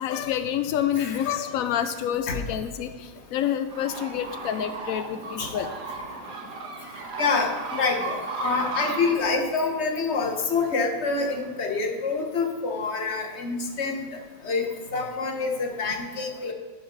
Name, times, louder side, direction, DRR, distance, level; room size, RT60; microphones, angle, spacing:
voice 1, 0.0-5.7, left 10 dB, 80° left, 9 dB, 0.7 m, -28 dB
sound 1, 3.7-9.1, right 3 dB, 60° right, 1.9 m, -35 dB
voice 2, 7.2-7.5 7.8-14.0 14.4-16.5, left 4 dB, 40° left, 3 dB, 1.3 m, -26 dB
11.0 x 11.0 x 4.0 m, 1.5 s
omnidirectional pair, 2.0 m